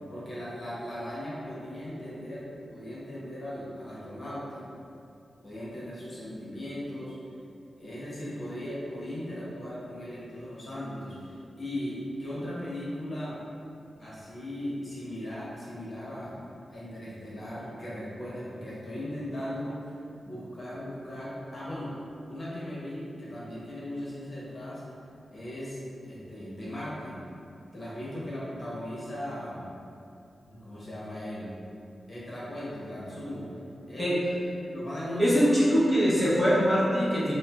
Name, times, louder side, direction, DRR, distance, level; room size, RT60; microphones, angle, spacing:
voice 1, 0.0-4.6 5.4-7.2 7.8-13.4 14.0-16.3 16.7-20.0 20.2-21.9 22.2-24.8 25.3-27.2 27.7-29.6 30.5-31.5 32.1-33.5 33.9-34.2 34.7-35.4, left 1 dB, 50° left, -8 dB, 0.8 m, -38 dB
voice 2, 35.2-37.3, equal, ahead, -9 dB, 0.8 m, -22 dB
4.0 x 2.0 x 2.3 m, 2.7 s
cardioid pair, 50°, 0 cm